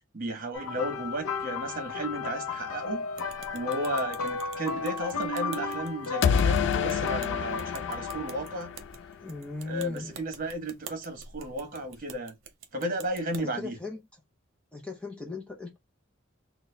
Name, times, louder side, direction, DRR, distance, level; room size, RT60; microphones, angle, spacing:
voice 1, 0.1-3.1 3.5-8.8 9.7-12.4 12.7-13.7, right 1 dB, 40° right, 1.3 m, -34 dB
sound 1, 0.5-8.8 9.7-9.9 11.7-11.9, left 4 dB, 90° left, 0.7 m, -34 dB
sound 2, 3.2-13.4, right 6 dB, 70° right, 0.8 m, -47 dB
sound 3, 6.2-9.1, left 7 dB, 60° left, 0.3 m, -27 dB
voice 2, 9.2-10.2 13.4-14.0 14.7-15.8, left 3 dB, 5° left, 0.6 m, -38 dB
3.9 x 2.2 x 3.3 m
head